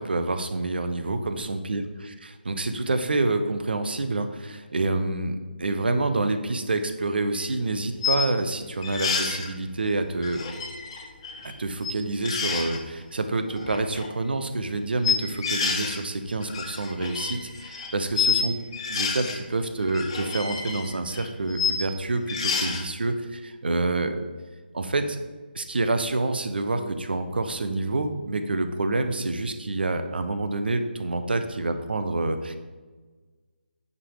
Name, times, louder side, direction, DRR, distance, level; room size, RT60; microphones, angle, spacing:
voice 1, 0.0-10.4 11.4-18.5 18.9-24.2 24.7-25.2 25.5-32.6, right 2 dB, 65° right, 8 dB, 1.0 m, -27 dB
sound 1, 7.3-7.4 8.0-8.3 8.8-9.5 10.2-11.5 11.8-11.9 12.2-12.8 13.5-14.1 15.0-16.0 16.3-18.4 18.7-19.4 19.8-21.8 22.3-22.8, left 6 dB, 30° left, 1.3 m, -28 dB
9.7 x 5.4 x 5.0 m, 1.4 s
figure-of-eight pair, 155°, 6 cm